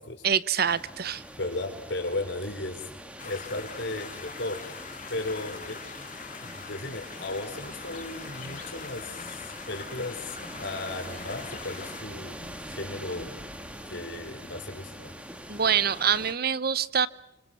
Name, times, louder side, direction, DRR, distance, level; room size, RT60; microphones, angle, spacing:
voice 1, 0.2-1.2 15.5-17.1, right 7 dB, 50° right, 17 dB, 0.8 m, -25 dB
sound 1, 0.6-16.3, equal, 5° right, 1.8 m, -43 dB
voice 2, 1.4-2.8 3.2-4.6 5.1-5.9 6.4-13.3 13.8-15.1, left 2 dB, 65° left, 4 dB, 4.7 m, -35 dB
sound 2, 3.2-12.0, left 6 dB, 40° left, 2.1 m, -43 dB
sound 3, 6.4-14.4, left 1 dB, 35° right, 5.1 m, -53 dB
26.0 x 24.5 x 5.8 m, 0.85 s
head